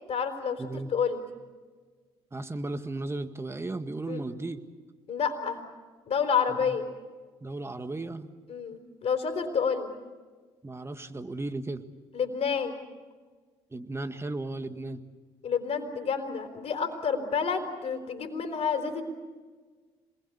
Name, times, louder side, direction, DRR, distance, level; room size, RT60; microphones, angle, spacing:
voice 1, 0.1-1.2 4.1-4.2 5.1-5.6 6.1-6.9 8.5-9.9 12.1-12.7 15.4-19.0, left 6 dB, 50° left, 6 dB, 4.2 m, -29 dB
voice 2, 0.6-0.9 2.3-4.6 6.5-6.8 7.4-8.3 10.6-11.8 13.7-15.0, right 2 dB, 20° right, 9 dB, 1.8 m, -35 dB
27.0 x 21.0 x 8.3 m, 1.4 s
hypercardioid pair, 60°, 13 cm